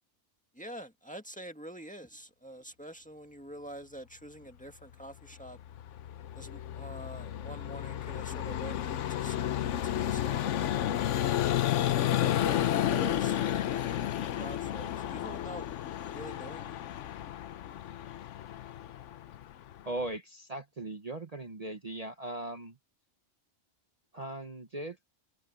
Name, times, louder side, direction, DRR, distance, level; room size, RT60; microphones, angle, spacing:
voice 1, 0.5-5.6 6.3-11.0 11.7-13.9 14.2-15.7 16.1-16.9, right 1 dB, 5° left, 1.7 m, -46 dB
Vehicle, 5.4-20.1, left 11 dB, 85° left, 1.0 m, -32 dB
voice 2, 19.8-22.8 24.1-25.0, right 2 dB, 35° right, 1.2 m, -39 dB
omnidirectional pair, 1.2 m